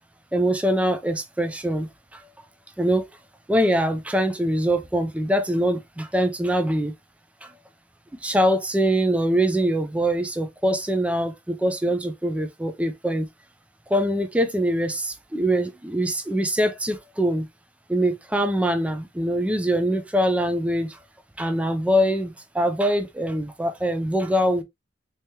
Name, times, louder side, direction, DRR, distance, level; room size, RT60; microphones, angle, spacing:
voice 1, 0.3-1.9 2.8-3.0 3.5-6.9 8.2-13.3 13.9-17.5 17.9-21.0 21.4-24.6, equal, 5° right, 0.4 m, -23 dB
3.3 x 3.2 x 2.7 m
head